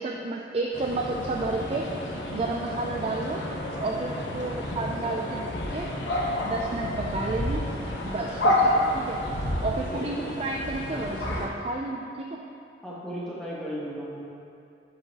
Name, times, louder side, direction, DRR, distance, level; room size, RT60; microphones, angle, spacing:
voice 1, 0.0-1.9 2.3-3.4 3.8-5.9 6.4-7.7 8.0-9.2 9.6-12.4, right 2 dB, 35° right, 0 dB, 0.4 m, -31 dB
sound 1, 0.7-11.5, left 1 dB, 85° left, 1.1 m, -29 dB
voice 2, 8.6-9.0 9.9-10.3 12.8-14.2, equal, 5° left, -8 dB, 1.5 m, -36 dB
10.5 x 5.4 x 2.9 m, 2.6 s
head